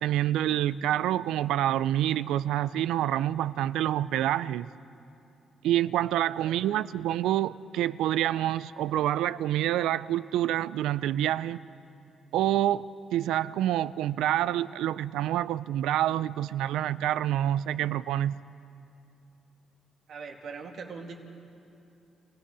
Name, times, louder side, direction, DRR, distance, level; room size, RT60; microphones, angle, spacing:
voice 1, 0.0-4.7 5.6-11.6 12.3-18.4, right 12 dB, 90° right, 17 dB, 0.4 m, -27 dB
voice 2, 6.3-6.9 20.1-21.2, right 5 dB, 70° right, 2 dB, 2.5 m, -42 dB
27.5 x 17.5 x 6.2 m, 2.8 s
cardioid pair, 75°, 0 cm